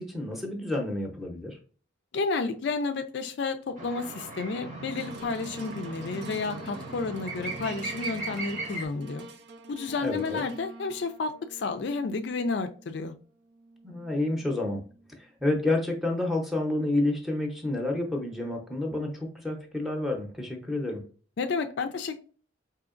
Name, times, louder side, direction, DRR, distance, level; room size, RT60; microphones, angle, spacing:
voice 1, 0.0-1.6 10.0-10.4 13.8-14.8 15.4-21.0, left 2 dB, ahead, 1 dB, 0.7 m, -29 dB
voice 2, 2.1-9.3 9.7-13.1 21.4-22.2, left 4 dB, 60° left, 8 dB, 0.4 m, -31 dB
sound 1, 3.8-8.9, right 2 dB, 35° right, 0.9 m, -38 dB
sound 2, 4.9-15.3 15.9-16.0, right 2 dB, 60° right, 0.5 m, -47 dB
4.8 x 2.8 x 2.5 m, 0.40 s
head